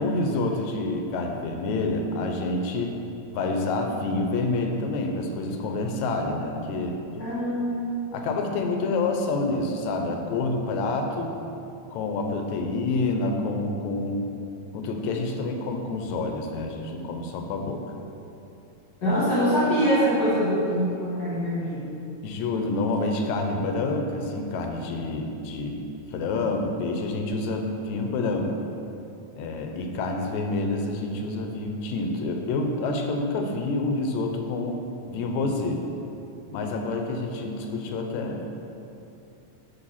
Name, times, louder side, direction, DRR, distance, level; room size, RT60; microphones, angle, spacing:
voice 1, 0.0-3.0 3.3-7.2 8.1-11.4 11.9-14.2 14.7-17.8 22.2-25.8 26.1-28.5 29.4-35.8 36.5-38.4, left 2 dB, 80° left, 3 dB, 2.0 m, -28 dB
voice 2, 7.2-7.9 19.0-21.9, equal, 45° left, -8 dB, 1.9 m, -24 dB
6.3 x 5.3 x 5.6 m, 2.8 s
omnidirectional pair, 3.3 m